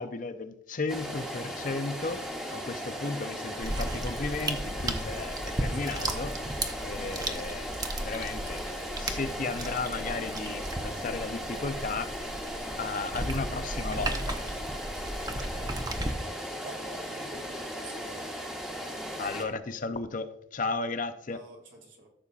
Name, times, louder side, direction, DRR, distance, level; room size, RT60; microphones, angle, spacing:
voice 1, 0.0-6.4 6.8-7.8 8.0-12.1 12.8-14.7 19.2-21.4, left 3 dB, 45° left, 10 dB, 0.6 m, -35 dB
sound 1, 0.9-19.4, equal, 5° right, 1.0 m, -37 dB
sound 2, 3.6-16.1, right 1 dB, 20° right, 0.7 m, -35 dB
voice 2, 5.4-6.2 16.1-18.5 21.3-22.1, right 2 dB, 80° right, 1 dB, 2.4 m, -49 dB
13.5 x 6.9 x 2.4 m, 0.76 s
head